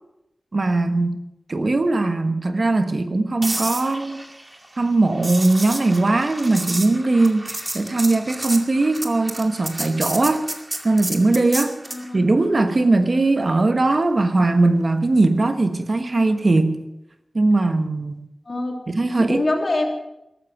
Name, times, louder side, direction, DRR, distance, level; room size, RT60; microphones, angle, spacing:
voice 1, 0.5-1.1 1.5-4.2 4.8-10.5 10.8-11.7 12.1-16.8 17.3-18.3 18.9-19.4, right 2 dB, 60° right, 7 dB, 1.3 m, -20 dB
sound 1, 3.4-12.1 16.3-16.5, right 1 dB, 35° right, 2.3 m, -31 dB
voice 2, 11.8-12.2 18.4-18.8 19.2-19.9, left 2 dB, 60° left, 0 dB, 3.4 m, -24 dB
14.0 x 13.0 x 6.1 m, 0.89 s
cardioid pair, 40°, 0 cm